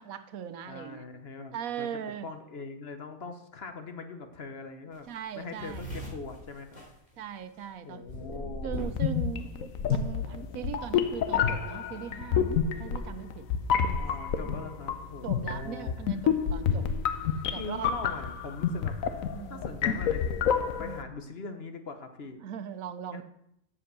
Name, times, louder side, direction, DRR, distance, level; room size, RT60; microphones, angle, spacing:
voice 1, 0.0-1.0 1.5-2.3 5.1-5.8 7.2-8.0 8.6-13.5 13.8-14.0 14.4-14.7 15.2-16.9 17.3-17.9 19.3-19.7 20.8-21.1 22.4-23.2, right 8 dB, 90° right, 11 dB, 1.2 m, -39 dB
voice 2, 0.7-1.9 2.2-5.1 5.3-6.8 7.8-8.8 14.0-16.0 16.7-17.0 17.5-18.9 19.5-22.4 23.1-23.2, left 4 dB, 50° left, 7 dB, 1.2 m, -42 dB
sound 1, 4.9-5.0 5.2-7.6 8.1-9.1 9.4-9.9, equal, 30° left, 3.1 m, -39 dB
sound 2, 8.9-21.0, left 7 dB, 80° left, 1.2 m, -29 dB
7.7 x 7.1 x 6.7 m, 0.76 s
omnidirectional pair, 1.4 m